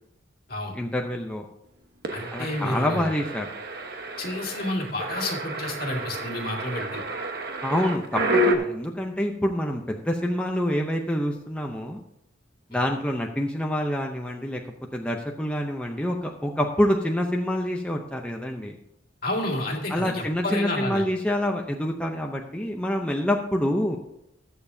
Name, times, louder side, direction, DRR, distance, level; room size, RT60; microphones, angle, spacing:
voice 1, 0.7-1.4 2.3-3.5 7.6-12.0 12.7-14.6 14.9-18.8 19.9-24.0, left 1 dB, 5° left, 1 dB, 0.6 m, -27 dB
sound 1, 2.0-8.6, right 1 dB, 55° right, 1.2 m, -29 dB
voice 2, 2.1-3.1 4.2-7.0 12.7-12.8 19.2-21.0, left 1 dB, 50° left, 0 dB, 2.1 m, -30 dB
20.0 x 6.9 x 2.7 m, 0.81 s
head